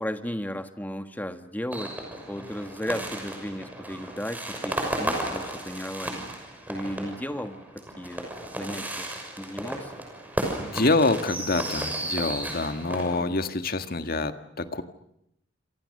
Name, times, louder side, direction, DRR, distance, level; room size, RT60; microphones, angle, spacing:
voice 1, 0.0-2.0 2.3-6.1 6.7-7.7 8.0-8.3 8.6-9.1 9.4-9.9 13.2-13.4, equal, 10° left, 8 dB, 1.5 m, -34 dB
sound 1, 1.7-13.2, right 1 dB, 10° right, 6.3 m, -34 dB
voice 2, 10.6-14.8, left 2 dB, 50° left, 8 dB, 1.8 m, -26 dB
28.0 x 27.0 x 6.7 m, 0.78 s
head